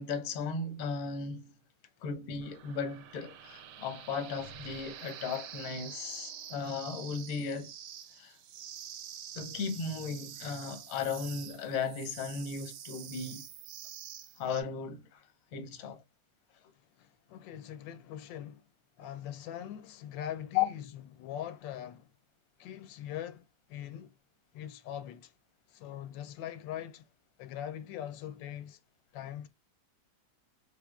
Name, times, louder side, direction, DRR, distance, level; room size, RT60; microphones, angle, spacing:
voice 1, 0.0-1.5 2.0-7.7 8.1-8.4 9.3-13.5 14.4-16.0 20.5-20.7, left 6 dB, 60° left, 1.0 m, -36 dB
sound 1, 2.4-14.6, right 9 dB, 75° right, 1.2 m, -47 dB
voice 2, 17.0-18.6 19.0-20.8 21.1-22.1 22.6-23.4 23.7-24.1 24.5-25.3 25.7-27.1 27.4-28.8 29.1-29.5, left 10 dB, 85° left, 1.3 m, -42 dB
3.5 x 3.3 x 2.3 m
omnidirectional pair, 2.0 m